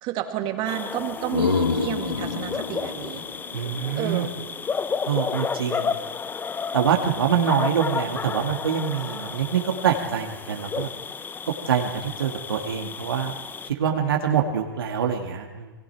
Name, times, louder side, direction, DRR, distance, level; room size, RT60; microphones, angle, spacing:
voice 1, 0.0-3.2 3.9-4.3, right 12 dB, 45° right, 5 dB, 2.5 m, -30 dB
sound 1, 0.7-13.7, left 6 dB, 15° left, 0.7 m, -32 dB
sound 2, 1.0-4.7, left 5 dB, 90° left, 1.4 m, -28 dB
voice 2, 3.5-4.3 5.1-6.0 6.7-10.9 11.5-13.3 13.7-15.7, right 8 dB, 75° right, 2 dB, 2.1 m, -25 dB
29.0 x 21.5 x 4.6 m, 1.2 s
hypercardioid pair, 105°, 12 cm